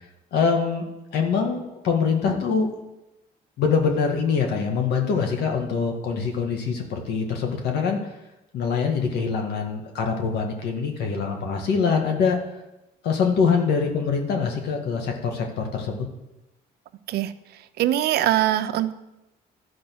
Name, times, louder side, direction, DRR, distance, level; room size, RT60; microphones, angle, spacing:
voice 1, 0.3-0.8 1.1-2.7 3.6-8.0 8.5-12.4 13.0-16.1, left 5 dB, 75° left, 2 dB, 2.0 m, -24 dB
voice 2, 17.8-18.9, right 13 dB, 70° right, 11 dB, 0.7 m, -22 dB
12.5 x 5.1 x 6.3 m, 0.95 s
cardioid pair, 110°, 17 cm